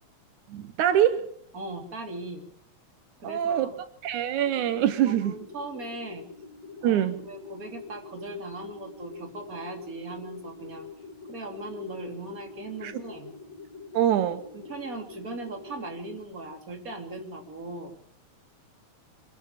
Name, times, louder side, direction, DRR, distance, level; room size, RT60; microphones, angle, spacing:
voice 1, 0.5-1.2 3.2-3.7 4.0-5.4 6.8-7.3 12.8-13.0 13.9-14.4, right 11 dB, 85° right, 2.4 m, -24 dB
voice 2, 1.5-2.5 3.2-3.7 5.1-6.3 6.8-10.9 11.3-13.3 14.2-18.0, right 2 dB, 30° right, 3.5 m, -39 dB
sound 1, 4.4-16.2, left 4 dB, 65° left, 3.6 m, -45 dB
25.0 x 12.5 x 8.9 m
omnidirectional pair, 3.4 m